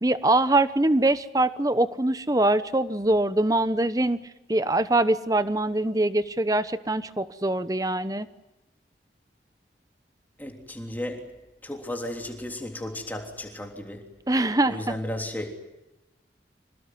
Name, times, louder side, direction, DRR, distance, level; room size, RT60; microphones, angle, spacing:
voice 1, 0.0-4.2 4.5-8.3 14.3-14.9, right 2 dB, 20° right, 1.0 m, -23 dB
voice 2, 10.4-11.3 11.6-14.1 14.7-15.5, left 1 dB, 10° left, 3.4 m, -34 dB
26.5 x 18.5 x 9.6 m
head